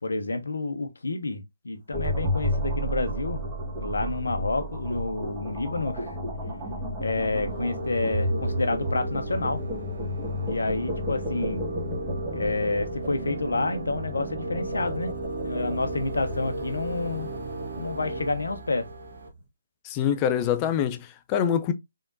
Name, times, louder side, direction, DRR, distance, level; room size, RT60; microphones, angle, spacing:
voice 1, 0.0-3.4 3.8-6.1 7.0-9.6 10.5-11.7 12.3-15.1 15.4-17.3 17.8-18.9, left 3 dB, 70° left, 0.9 m, -29 dB
sound 1, 1.9-19.2, equal, 10° right, 1.4 m, -33 dB
sound 2, 7.3-19.3, right 2 dB, 55° right, 1.3 m, -36 dB
voice 2, 19.8-21.7, left 9 dB, 20° left, 0.5 m, -25 dB
3.7 x 3.5 x 2.6 m
figure-of-eight pair, 145°, 0 cm